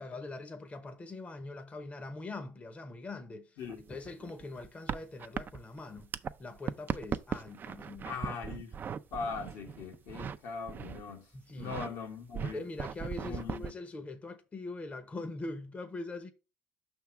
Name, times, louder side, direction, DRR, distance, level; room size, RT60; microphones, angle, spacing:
voice 1, 0.0-3.6 3.9-6.1 6.4-8.1 11.3-11.7 12.4-16.3, left 2 dB, 25° left, 0.9 m, -42 dB
voice 2, 3.6-3.9 8.1-8.8 9.1-11.3 11.6-12.6 13.2-13.6, left 5 dB, 75° left, 1.6 m, -40 dB
sound 1, 3.6-6.3 6.6-10.4 10.7-11.1 11.5-11.9 12.3-13.7, right 7 dB, 40° right, 0.4 m, -38 dB
5.9 x 3.5 x 5.8 m
supercardioid pair, 95°, 5 cm